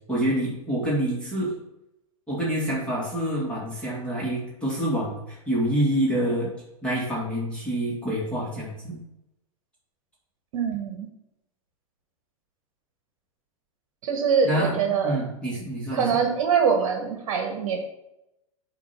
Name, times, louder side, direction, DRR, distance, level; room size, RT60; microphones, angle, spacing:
voice 1, 0.1-1.6 2.3-6.5 6.8-9.0 14.4-16.2, right 1 dB, 5° left, -8 dB, 2.4 m, -27 dB
voice 2, 10.5-11.1 14.0-15.2 15.9-17.8, right 6 dB, 55° right, 4 dB, 1.4 m, -24 dB
7.9 x 3.0 x 5.9 m, 0.88 s
hypercardioid pair, 105°, 18 cm